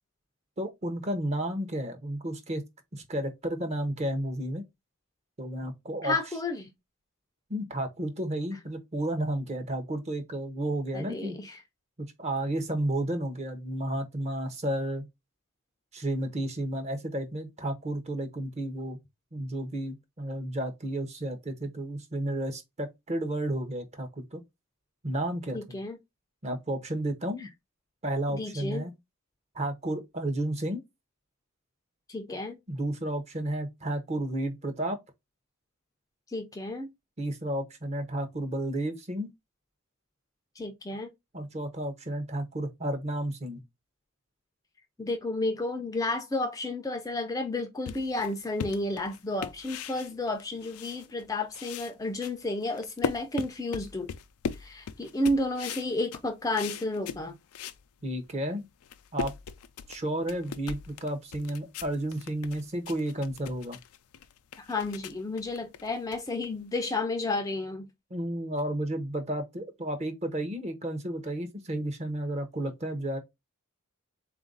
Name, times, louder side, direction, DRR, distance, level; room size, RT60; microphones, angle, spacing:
voice 1, 0.6-2.6 2.9-4.6 5.4-6.2 7.5-11.4 12.0-15.0 15.9-19.0 19.3-24.4 25.0-25.8 26.4-27.5 28.0-28.9 29.5-30.8 32.7-35.0 37.2-39.3 41.3-43.6 58.0-58.7 59.1-59.3 59.9-63.8 68.1-73.2, right 1 dB, 30° right, 0.7 m, -32 dB
voice 2, 6.0-6.7 10.9-11.6 25.5-26.0 28.3-28.8 32.1-32.6 36.3-36.9 40.6-41.1 45.0-54.1 54.6-57.3 64.6-67.9, left 2 dB, 15° left, 0.4 m, -32 dB
sound 1, 47.9-51.3 51.5-57.8 58.3-58.4 58.7-66.8, left 6 dB, 85° left, 0.4 m, -39 dB
3.9 x 2.5 x 3.7 m
head